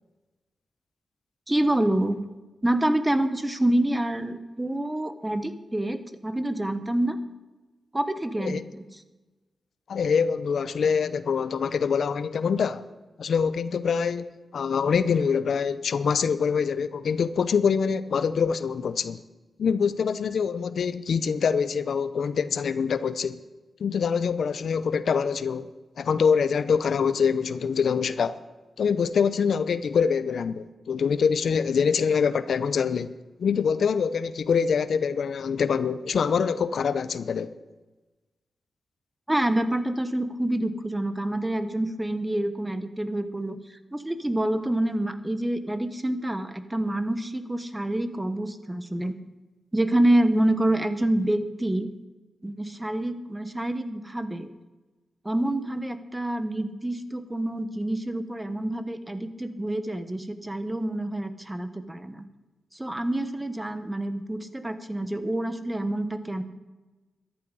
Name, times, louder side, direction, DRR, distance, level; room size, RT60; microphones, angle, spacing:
voice 1, 1.5-2.3 2.6-7.2 7.9-8.9 39.3-49.2 49.7-51.9 52.4-54.5 55.2-62.2 62.7-66.4, right 1 dB, 15° right, 1.1 m, -27 dB
voice 2, 9.9-12.8 13.2-19.2 19.6-23.4 23.8-25.7 26.0-28.4 28.8-33.1 33.4-37.5, left 6 dB, 75° left, 0.6 m, -25 dB
13.5 x 11.5 x 5.5 m
cardioid pair, 70°, 0 cm